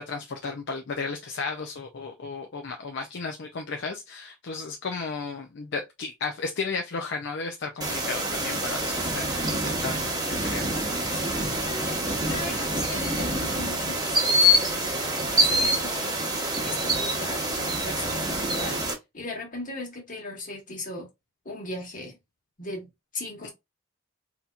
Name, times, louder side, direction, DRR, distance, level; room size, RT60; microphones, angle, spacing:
voice 1, 0.0-10.7 23.4-23.5, left 4 dB, 55° left, 0.5 m, -34 dB
sound 1, 7.8-18.9, equal, 20° right, 1.1 m, -26 dB
voice 2, 11.1-16.2 16.6-21.1 21.4-22.2 22.6-22.9 23.1-23.5, left 2 dB, 40° left, 1.5 m, -38 dB
4.1 x 2.8 x 2.3 m
head